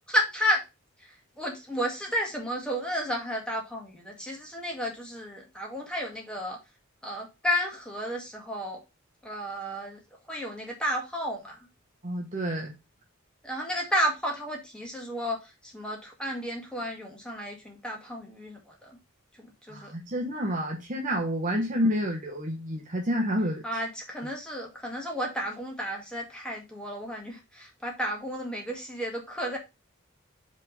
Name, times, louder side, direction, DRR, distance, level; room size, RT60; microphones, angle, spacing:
voice 1, 0.1-0.6 1.4-6.6 7.0-8.8 9.2-10.0 10.3-11.6 13.4-15.4 15.7-18.6 19.4-19.9 23.6-29.6, equal, 5° left, 1.8 m, -32 dB
voice 2, 12.0-12.7 19.7-23.8, equal, 35° right, 1.0 m, -29 dB
5.4 x 3.6 x 5.3 m
head